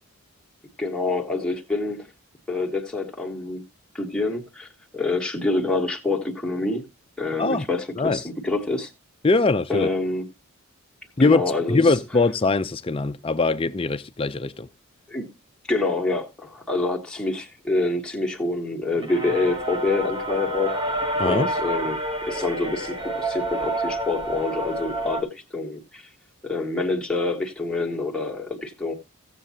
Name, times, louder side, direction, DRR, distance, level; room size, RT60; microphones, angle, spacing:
voice 1, 0.8-2.0 2.5-3.6 3.9-6.8 7.2-8.9 9.7-10.3 11.2-11.9 15.1-15.3 15.7-20.8 21.2-26.1 26.4-28.9, left 2 dB, 5° left, 1.3 m, -26 dB
voice 2, 9.2-9.9 11.2-11.4 11.7-14.7 21.2-21.5, left 3 dB, 25° left, 0.4 m, -21 dB
sound 1, 19.0-25.2, right 1 dB, 20° right, 1.1 m, -28 dB
16.0 x 7.4 x 2.8 m
head